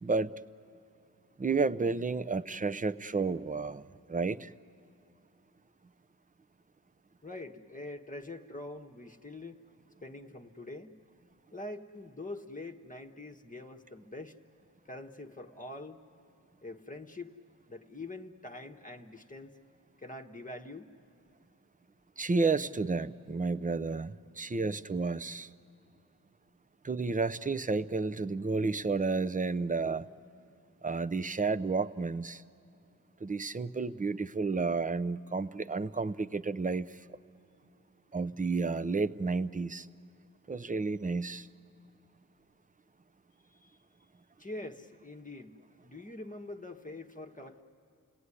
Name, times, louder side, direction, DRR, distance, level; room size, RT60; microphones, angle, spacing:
voice 1, 0.0-0.3 1.4-3.8 4.1-4.5 22.2-25.5 26.8-30.1 30.8-32.4 33.2-37.1 38.1-39.9 40.5-41.5, right 4 dB, 25° right, 15 dB, 0.5 m, -31 dB
voice 2, 7.2-9.6 10.0-11.0 11.5-14.3 14.8-16.0 16.6-17.4 17.7-19.6 20.0-20.9 43.5-43.8 44.4-47.6, left 2 dB, 20° left, 4 dB, 1.1 m, -44 dB
29.0 x 18.5 x 9.7 m, 2.8 s
wide cardioid pair, 85°, 36 cm